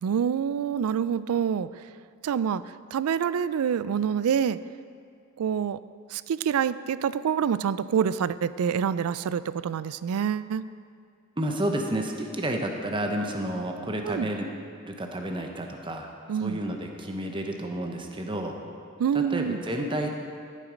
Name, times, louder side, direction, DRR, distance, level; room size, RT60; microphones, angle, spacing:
voice 1, 0.0-1.7 2.2-2.6 2.9-4.6 5.4-5.8 6.1-10.6 14.0-14.3 16.3-16.6 19.0-19.6, right 8 dB, 90° right, 16 dB, 0.3 m, -26 dB
voice 2, 11.4-14.5 14.9-16.1 16.4-18.5 19.1-20.1, right 1 dB, 25° right, 3 dB, 0.9 m, -30 dB
13.0 x 7.5 x 5.1 m, 2.3 s
head